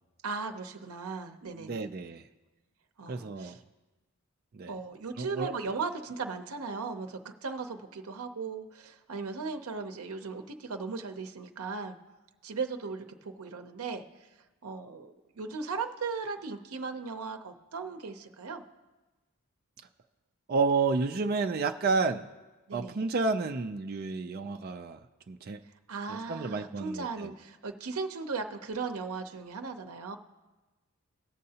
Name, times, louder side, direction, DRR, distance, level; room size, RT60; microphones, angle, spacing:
voice 1, 0.2-1.9 3.0-3.6 4.7-12.0 12.4-14.0 14.6-18.6 22.7-23.0 25.9-30.2, right 4 dB, 80° right, 5 dB, 0.6 m, -37 dB
voice 2, 1.6-2.2 3.1-3.6 4.5-4.8 5.2-5.5 20.5-22.3 22.7-25.0 25.3-25.6 26.1-27.3, right 4 dB, 45° right, 5 dB, 0.4 m, -30 dB
18.0 x 6.5 x 2.8 m, 1.2 s
head